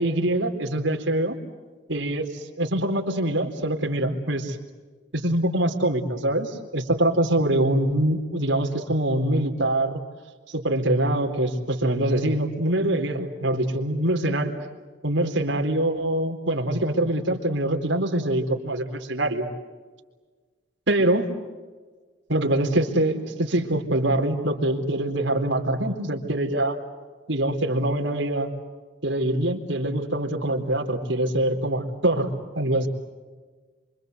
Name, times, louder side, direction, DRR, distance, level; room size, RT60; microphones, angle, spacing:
voice 1, 0.0-1.4 1.9-2.2 2.6-4.6 5.1-10.0 10.5-14.5 15.0-19.5 20.9-21.3 22.3-26.8 27.3-28.5 29.0-32.9, right 1 dB, 85° right, 2 dB, 4.1 m, -24 dB
27.5 x 26.0 x 8.1 m, 1.4 s
head